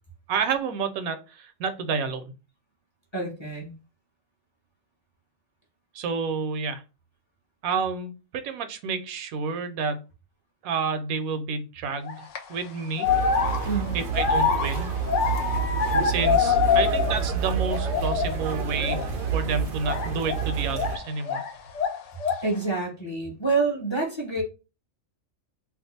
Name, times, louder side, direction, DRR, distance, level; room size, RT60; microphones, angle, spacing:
voice 1, 0.3-2.2 5.9-6.8 7.6-10.0 10.6-13.1 13.9-14.9 16.0-19.0 19.3-21.4, right 5 dB, 85° right, 9 dB, 1.0 m, -29 dB
voice 2, 3.1-3.7 13.6-14.0 22.4-24.4, right 3 dB, 30° left, -1 dB, 0.6 m, -27 dB
sound 1, 12.0-12.4 13.0-17.3 17.6-18.4 18.8-19.1 19.8-21.5 21.7-22.5, left 7 dB, 65° left, 0.9 m, -25 dB
sound 2, 13.0-21.0, right 7 dB, 70° right, 0.5 m, -29 dB
2.5 x 2.3 x 4.0 m, 0.31 s
omnidirectional pair, 1.4 m